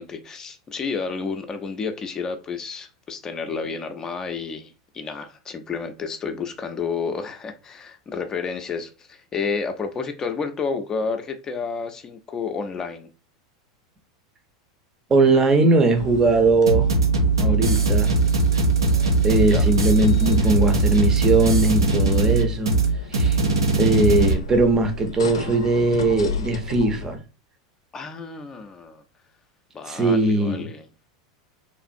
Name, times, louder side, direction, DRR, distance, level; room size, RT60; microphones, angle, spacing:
voice 1, 0.0-13.1 19.5-19.7 27.9-29.0 29.7-30.9, left 5 dB, 25° left, 0.5 m, -30 dB
voice 2, 15.1-17.0 17.4-18.2 19.2-22.7 23.1-23.4 23.8-27.2 29.9-30.7, right 2 dB, 25° right, 0.6 m, -20 dB
sound 1, 15.9-27.2, left 4 dB, 85° left, 0.5 m, -35 dB
sound 2, 16.7-24.3, right 3 dB, 90° right, 0.5 m, -20 dB
3.1 x 2.4 x 2.6 m
hypercardioid pair, 90°, 2 cm